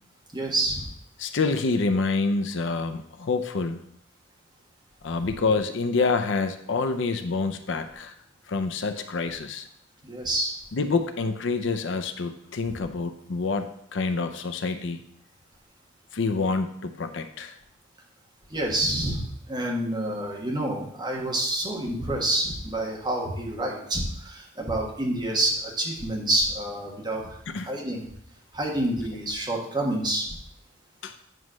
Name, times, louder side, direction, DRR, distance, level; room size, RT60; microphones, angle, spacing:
voice 1, 0.3-0.9 10.0-10.5 12.7-12.8 18.5-28.0 28.5-30.2, right 1 dB, 20° right, -2 dB, 1.4 m, -28 dB
voice 2, 1.2-3.8 5.0-8.1 8.5-9.7 10.7-15.0 16.1-17.6 27.5-27.7 31.0-31.1, left 4 dB, 60° left, 8 dB, 0.5 m, -27 dB
9.2 x 3.2 x 6.2 m, 0.71 s
head